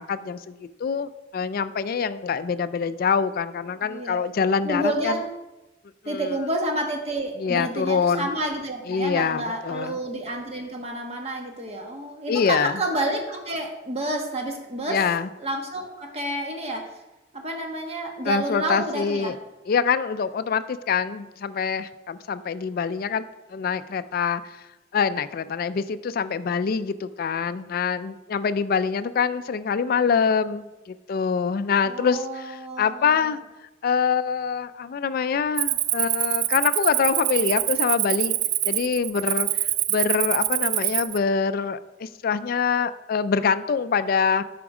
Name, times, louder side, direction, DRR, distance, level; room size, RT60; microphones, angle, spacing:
voice 1, 0.0-5.2 6.0-6.4 7.4-8.3 8.9-10.0 12.3-12.8 14.9-15.3 18.2-19.4 19.7-24.4 24.9-33.4 33.8-38.4 38.6-39.5 39.9-44.4, left 6 dB, 50° left, 12 dB, 0.3 m, -25 dB
voice 2, 3.8-4.2 4.6-5.2 6.1-15.0 15.4-16.9 17.3-19.3 31.8-33.3, right 1 dB, 35° right, 2 dB, 1.2 m, -29 dB
Cricket, 35.6-41.2, right 15 dB, 55° right, 0.3 m, -25 dB
8.5 x 5.1 x 4.8 m, 1.0 s
head